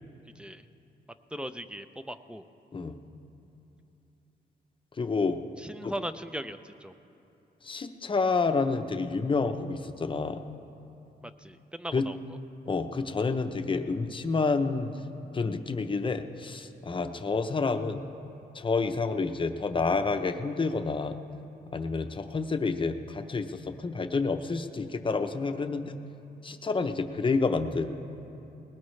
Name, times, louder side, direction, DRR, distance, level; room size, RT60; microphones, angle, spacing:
voice 1, 1.3-2.4 5.6-6.9 11.4-12.2, right 1 dB, 5° right, 11 dB, 0.4 m, -38 dB
voice 2, 5.0-5.4 5.8-5.9 7.6-10.4 11.9-12.1 12.7-14.9 15.3-18.1 18.5-21.2 21.7-25.9 26.4-28.0, left 4 dB, 30° left, 7 dB, 0.7 m, -29 dB
20.5 x 17.5 x 3.2 m, 2.9 s
cardioid pair, 115°, 18 cm